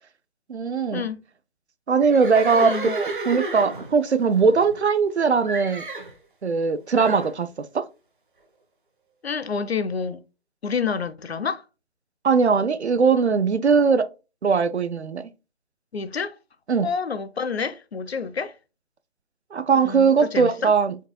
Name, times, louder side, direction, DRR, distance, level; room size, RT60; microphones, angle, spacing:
voice 1, 0.5-1.0 1.9-5.8 6.4-7.9 12.2-14.1 14.4-15.3 16.7-16.9 19.5-21.0, right 5 dB, 75° right, 0.6 m, -20 dB
Livestock farm animals working animals, 2.0-5.1 5.4-6.1 6.9-7.3, right 3 dB, 50° right, 0.9 m, -32 dB
voice 2, 2.6-3.0 9.2-10.2 10.6-11.6 15.9-16.3 16.8-18.5 19.7-20.7, left 5 dB, 65° left, 0.5 m, -28 dB
4.5 x 3.7 x 2.3 m
figure-of-eight pair, 150°, 34 cm